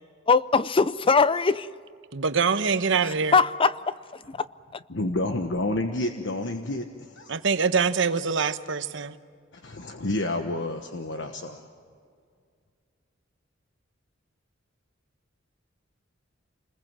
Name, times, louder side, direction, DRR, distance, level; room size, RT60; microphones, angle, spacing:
voice 1, 0.3-1.7 3.3-3.9 4.3-4.5, left 4 dB, 25° left, 0.5 m, -21 dB
voice 2, 2.1-3.4 7.3-9.2, right 5 dB, 65° right, 1.0 m, -24 dB
voice 3, 4.9-7.4 9.5-11.7, left 1 dB, 65° left, 1.3 m, -30 dB
28.5 x 21.0 x 7.6 m
head